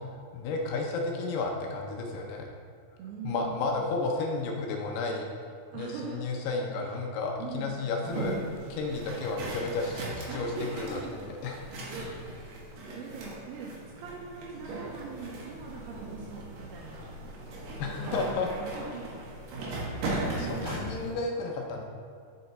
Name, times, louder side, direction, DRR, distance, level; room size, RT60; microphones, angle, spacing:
voice 1, 0.3-2.5 3.2-5.3 5.7-8.4 8.7-11.6 17.8-18.8 20.3-21.8, left 3 dB, 80° left, 1 dB, 2.5 m, -32 dB
voice 2, 3.0-3.8 5.7-6.2 6.8-7.0 7.4-7.8 10.3-11.1 11.9-12.4 12.9-13.7 14.0-17.1 18.0-19.1 20.4-20.7, right 5 dB, 80° right, -3 dB, 2.4 m, -41 dB
sound 1, 8.0-21.1, right 2 dB, 60° right, 2.4 m, -38 dB
7.5 x 6.8 x 4.1 m, 2.3 s
omnidirectional pair, 5.1 m